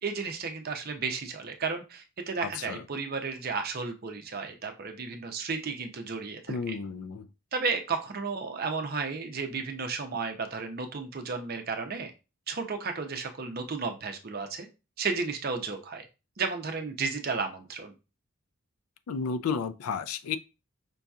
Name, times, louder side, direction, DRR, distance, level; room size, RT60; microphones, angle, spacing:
voice 1, 0.0-6.8 7.5-12.1 12.5-14.7 15.0-16.1 16.4-17.9, right 4 dB, 45° right, 0.6 m, -33 dB
voice 2, 2.4-2.8 6.5-7.3 19.1-20.4, left 5 dB, 80° left, 0.4 m, -32 dB
5.3 x 2.7 x 2.3 m
head